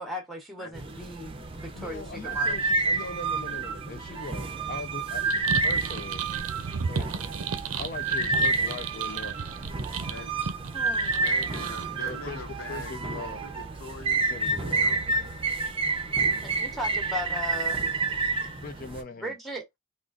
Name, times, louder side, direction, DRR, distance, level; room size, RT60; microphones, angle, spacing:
voice 1, 0.0-2.6 10.7-11.9 16.4-17.9 19.2-19.6, left 1 dB, ahead, 0.9 m, -37 dB
voice 2, 0.6-0.9 9.3-10.3 11.1-14.2 14.5-15.6, left 3 dB, 80° left, 1.1 m, -44 dB
sound 1, 0.7-19.0, right 3 dB, 25° right, 0.6 m, -29 dB
voice 3, 1.7-5.2 5.6-6.3 6.9-7.1 7.8-9.4 12.1-12.4 12.7-13.4 14.3-14.9 18.6-19.3, left 3 dB, 40° left, 0.4 m, -40 dB
sound 2, 5.2-11.9, right 6 dB, 90° right, 0.5 m, -35 dB
3.7 x 2.4 x 2.4 m
head